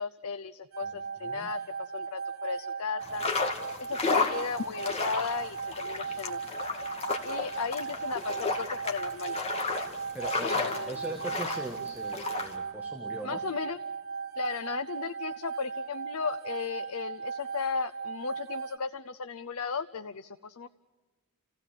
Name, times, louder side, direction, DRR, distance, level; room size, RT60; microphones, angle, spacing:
voice 1, 0.0-3.2 3.8-6.4 7.2-9.4 10.4-10.9 13.2-13.8 14.4-20.7, left 5 dB, 80° left, 11 dB, 0.7 m, -35 dB
sound 1, 0.7-18.8, right 6 dB, 70° right, 1.1 m, -37 dB
voice 2, 0.8-1.5 10.1-13.4, right 1 dB, 10° right, 1 dB, 1.9 m, -40 dB
sound 2, 3.0-12.5, left 4 dB, 30° left, 2.2 m, -33 dB
30.0 x 16.0 x 7.5 m, 1.3 s
head